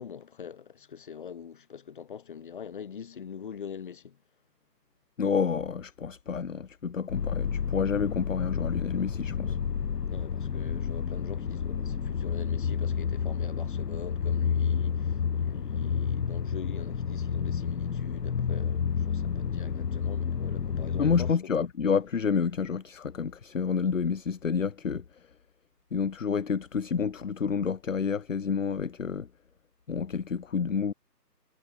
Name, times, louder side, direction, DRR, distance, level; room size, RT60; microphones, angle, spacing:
voice 1, 0.0-4.2 9.4-9.7 10.1-21.3, left 7 dB, 30° left, 7.7 m, -43 dB
voice 2, 5.2-9.6 21.0-25.3 25.9-29.3 29.9-30.9, left 6 dB, 55° left, 0.6 m, -29 dB
sound 1, 7.1-21.3, left 7 dB, 70° left, 1.1 m, -30 dB
hypercardioid pair, 175°, 49 cm